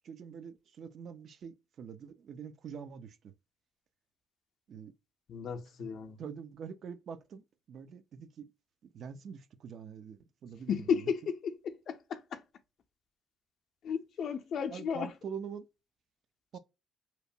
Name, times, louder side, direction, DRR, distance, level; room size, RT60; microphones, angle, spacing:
voice 1, 0.0-3.3 4.7-4.9 5.8-5.9 6.2-8.5 8.9-11.1 14.7-15.7 16.5-16.6, right 7 dB, 65° right, 0.4 m, -45 dB
voice 2, 5.3-6.2 10.7-12.4 13.8-15.1, left 6 dB, 65° left, 0.4 m, -34 dB
2.8 x 2.1 x 2.6 m
cardioid pair, 90°, 0 cm